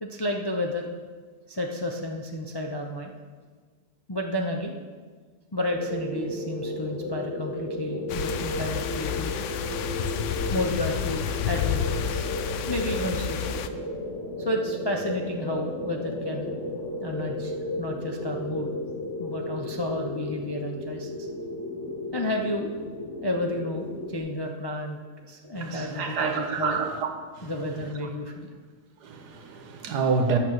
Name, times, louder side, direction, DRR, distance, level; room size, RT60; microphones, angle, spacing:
voice 1, 0.0-0.9 1.5-3.1 4.1-4.8 5.5-9.5 10.5-12.2 12.7-13.6 14.4-16.5 17.0-18.7 19.2-21.3 22.1-22.8 23.2-26.8 27.4-28.5, left 1 dB, 35° left, 1 dB, 0.4 m, -31 dB
sound 1, 5.7-24.2, left 1 dB, 20° left, 3.1 m, -34 dB
sound 2, 8.1-13.7, left 9 dB, 70° left, 0.7 m, -30 dB
voice 2, 25.6-27.1 27.4-27.5 29.0-30.4, right 5 dB, 80° right, 5 dB, 1.6 m, -27 dB
8.9 x 6.1 x 7.6 m, 1.5 s
omnidirectional pair, 1.7 m